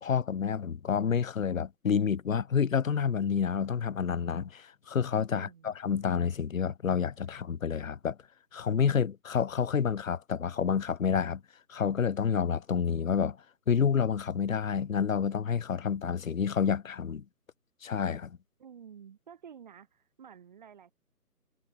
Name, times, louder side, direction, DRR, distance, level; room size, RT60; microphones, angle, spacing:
voice 1, 0.0-8.2 8.5-11.4 11.7-13.4 13.7-17.2 17.8-18.4, left 7 dB, 60° left, 0.8 m, -29 dB
voice 2, 5.3-5.7 18.6-20.9, right 8 dB, 30° right, 4.5 m, -51 dB
hypercardioid pair, 170°, 47 cm